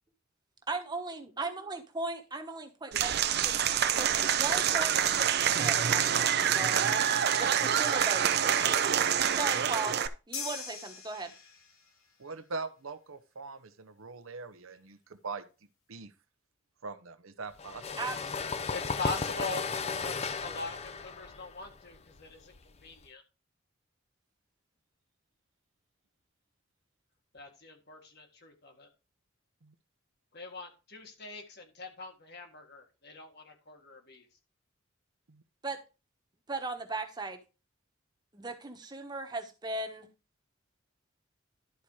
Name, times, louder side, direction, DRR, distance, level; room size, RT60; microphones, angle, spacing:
voice 1, 0.7-3.6 3.9-4.1 4.4-7.0 7.4-8.8 9.3-9.9 10.3-11.3 18.0-18.2 35.6-35.8 36.5-37.4 38.3-40.1, right 3 dB, 20° right, 5 dB, 1.2 m, -37 dB
Applause / Crowd, 2.9-10.1, right 9 dB, 50° right, 0.6 m, -26 dB
sound 1, 10.3-11.9, left 5 dB, 85° left, 2.2 m, -41 dB
voice 2, 12.2-15.5 15.9-16.1 16.8-18.1 29.6-29.7 35.3-35.4, right 4 dB, 80° right, 12 dB, 0.9 m, -42 dB
sound 2, 17.6-23.1, left 5 dB, 30° left, 0.6 m, -35 dB
voice 3, 18.7-19.7 20.0-23.2 27.3-28.9 30.3-34.2, left 3 dB, 50° left, 4 dB, 1.7 m, -42 dB
11.5 x 4.3 x 4.8 m, 0.31 s
head